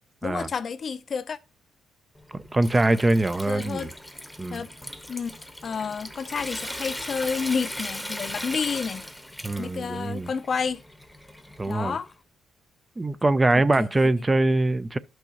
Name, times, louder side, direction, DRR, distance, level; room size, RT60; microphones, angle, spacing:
voice 1, 0.2-1.4 3.5-3.9 4.5-4.7 5.1-5.4 5.6-9.1 9.6-10.8 11.7-12.1 13.5-13.9, left 5 dB, 45° left, 0.5 m, -30 dB
Water tap faucet / Sink (filling or washing) / Trickle dribble, 2.2-12.1, left 1 dB, 5° left, 0.9 m, -38 dB
voice 2, 2.3-3.9 4.4-4.6 9.4-10.3 11.6-12.0 13.0-15.0, right 2 dB, 20° right, 0.4 m, -23 dB
11.5 x 6.2 x 2.9 m
cardioid pair, 90°, 0 cm